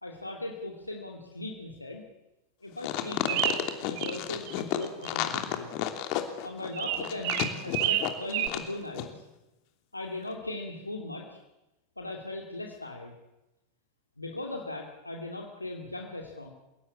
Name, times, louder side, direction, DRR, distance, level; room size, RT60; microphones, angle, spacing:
voice 1, 0.0-2.0 2.6-5.7 6.4-7.4 7.6-9.3 9.9-11.4 12.0-13.1 14.2-16.5, left 2 dB, 85° left, 1 dB, 2.7 m, -38 dB
sound 1, 2.8-8.7 8.9-9.1, left 13 dB, 45° left, 2.9 m, -31 dB
sound 2, 3.3-4.2 4.5-5.1 6.7-8.5, right 12 dB, 45° right, 2.1 m, -30 dB
29.0 x 17.0 x 8.6 m, 1.0 s
figure-of-eight pair, 90°, 0 cm